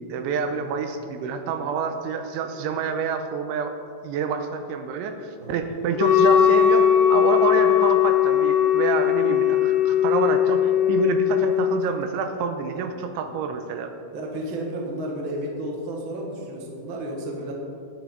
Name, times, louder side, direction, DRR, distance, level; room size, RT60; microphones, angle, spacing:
voice 1, 0.0-3.7 4.0-13.9, right 5 dB, 85° right, 6 dB, 3.1 m, -27 dB
Wind instrument woodwind instrument, 6.0-11.8, left 10 dB, 90° left, 3.6 m, -19 dB
voice 2, 14.1-17.5, right 1 dB, 60° right, -1 dB, 1.3 m, -32 dB
20.0 x 8.2 x 4.0 m, 2.4 s
omnidirectional pair, 5.5 m